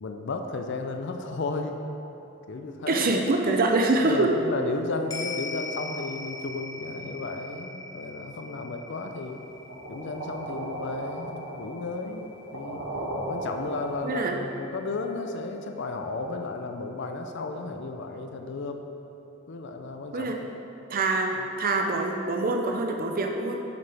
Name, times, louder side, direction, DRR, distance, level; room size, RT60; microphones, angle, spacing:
voice 1, 0.0-1.8 2.5-3.1 4.0-9.4 9.9-12.8 13.3-18.8 19.5-20.3, left 3 dB, 60° left, 5 dB, 0.5 m, -34 dB
voice 2, 2.9-4.3 14.0-14.4 20.1-20.4 20.9-23.6, right 2 dB, 45° right, 3 dB, 0.5 m, -25 dB
sound 1, 5.1-13.7 14.0-14.1, left 3 dB, 15° left, 0.8 m, -41 dB
sound 2, 9.7-14.2, right 1 dB, 90° right, 1.4 m, -36 dB
8.2 x 7.0 x 3.4 m, 2.9 s
head